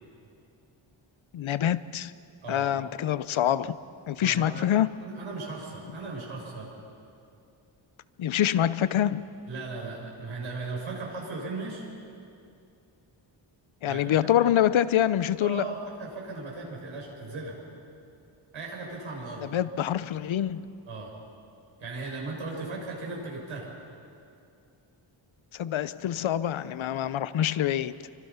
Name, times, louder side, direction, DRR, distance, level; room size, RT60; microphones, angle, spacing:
voice 1, 1.3-2.1 2.5-3.8 4.1-4.9 8.2-9.2 13.8-15.7 19.4-20.6 25.5-27.9, left 11 dB, 80° left, 0.8 m, -25 dB
voice 2, 4.2-4.7 5.0-6.7 9.5-11.9 13.8-14.5 15.4-17.5 18.5-19.5 20.9-21.1 21.8-23.7, right 3 dB, 80° right, 6.8 m, -37 dB
29.5 x 24.5 x 5.7 m
wide cardioid pair, 150°, 47 cm